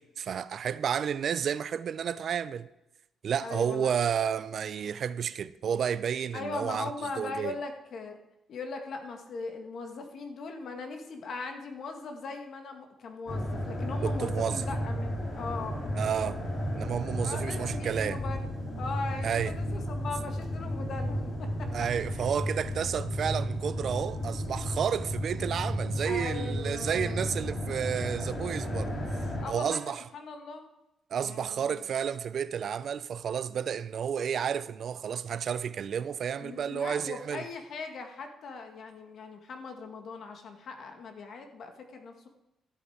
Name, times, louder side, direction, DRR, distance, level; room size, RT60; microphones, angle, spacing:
voice 1, 0.0-2.7 3.2-7.6 14.0-14.6 16.0-16.4 16.7-18.2 19.2-19.5 21.7-28.9 29.5-30.1 31.1-37.5, right 8 dB, 60° right, 0.5 m, -31 dB
voice 2, 3.4-3.9 6.3-8.2 8.5-15.8 17.2-18.5 18.8-21.7 22.1-22.3 22.7-22.8 25.8-27.2 29.4-29.8 30.1-30.7 31.2-31.9 36.4-42.3, left 4 dB, 60° left, 1.8 m, -39 dB
sound 1, 13.3-29.5, equal, 40° left, 2.8 m, -33 dB
13.5 x 8.2 x 4.9 m
cardioid pair, 90°, 0 cm